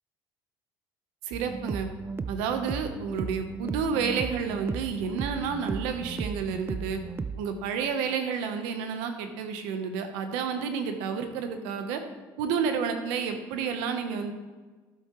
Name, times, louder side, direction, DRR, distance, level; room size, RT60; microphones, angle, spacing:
voice 1, 1.2-1.9 2.3-7.0 7.4-12.0 12.4-14.3, right 6 dB, 90° right, 6 dB, 1.1 m, -30 dB
sound 1, 1.3-7.4, right 5 dB, 25° right, 0.5 m, -35 dB
13.0 x 7.5 x 3.2 m, 1.3 s
supercardioid pair, 85°, 9 cm